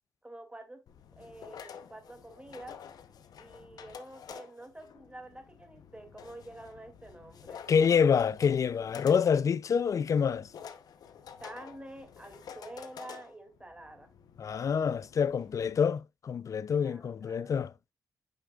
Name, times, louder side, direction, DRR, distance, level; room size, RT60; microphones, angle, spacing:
voice 1, 0.2-0.8 1.2-2.8 3.4-7.6 11.4-14.1 16.8-17.5, right 1 dB, 15° right, 2.3 m, -48 dB
sound 1, 0.9-15.8, left 7 dB, 70° left, 0.8 m, -50 dB
voice 2, 7.7-10.5 14.4-17.7, left 6 dB, 55° left, 0.4 m, -27 dB
8.4 x 5.8 x 2.4 m
cardioid pair, 60°, 7 cm